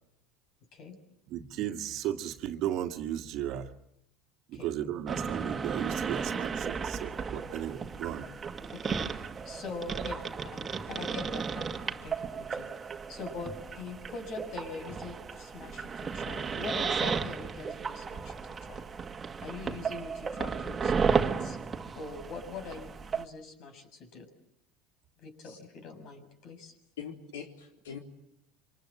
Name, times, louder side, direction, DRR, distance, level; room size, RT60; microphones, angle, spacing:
voice 1, 1.3-3.7 4.5-8.3 10.0-10.1, right 11 dB, 55° right, 1.8 m, -35 dB
sound 1, 5.1-23.3, right 5 dB, 25° right, 1.8 m, -34 dB
voice 2, 8.7-10.2 10.5-12.7 13.1-18.3 18.6-18.8 19.4-21.6 21.9-24.3 25.2-26.7, left 4 dB, 50° left, 6.9 m, -43 dB
voice 3, 27.0-28.0, left 7 dB, 75° left, 3.9 m, -42 dB
27.5 x 25.5 x 7.6 m
hypercardioid pair, 75°, 0 cm